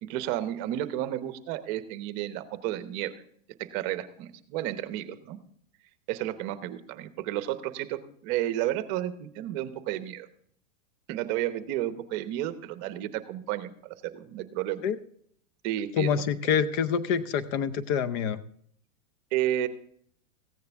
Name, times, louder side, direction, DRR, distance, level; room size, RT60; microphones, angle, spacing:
voice 1, 0.0-3.1 3.6-5.4 6.1-10.3 11.1-14.8 15.6-16.1 19.3-19.7, right 13 dB, 40° right, 12 dB, 0.9 m, -32 dB
voice 2, 16.0-18.4, left 7 dB, 40° left, 14 dB, 0.6 m, -26 dB
15.0 x 9.5 x 3.5 m, 0.63 s
supercardioid pair, 135°, 39 cm